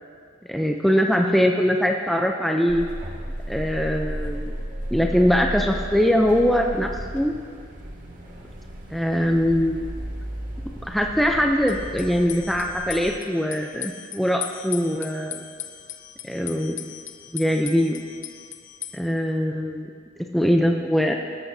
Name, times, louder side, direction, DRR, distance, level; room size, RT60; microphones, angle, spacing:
voice 1, 0.5-2.9 3.5-4.5 4.9-7.3 8.9-9.8 10.9-15.4 16.2-16.9 17.3-18.1 18.9-19.9 20.3-21.2, equal, ahead, 1 dB, 0.5 m, -22 dB
sound 1, 2.7-13.1, equal, 45° right, 2.0 m, -34 dB
sound 2, 3.5-3.6 3.8-4.0 4.6-5.0 5.3-7.2 7.5-7.6 11.7-19.0, left 11 dB, 40° left, 0.7 m, -39 dB
20.0 x 14.0 x 2.8 m, 2.2 s
head